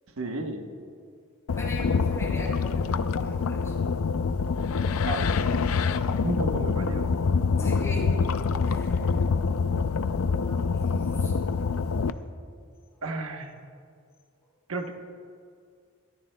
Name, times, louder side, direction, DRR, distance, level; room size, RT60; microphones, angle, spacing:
voice 1, 0.2-0.7 5.0-5.5 6.1-7.1 13.0-13.5 14.7-14.9, right 2 dB, 80° right, 4 dB, 1.0 m, -32 dB
sound 1, 1.5-12.1, left 5 dB, 80° left, 0.5 m, -26 dB
voice 2, 1.5-3.8 7.5-8.2 8.6-9.1 9.9-11.4 12.9-13.0, left 1 dB, 15° left, -3 dB, 3.4 m, -41 dB
24.0 x 13.5 x 2.2 m, 2.2 s
head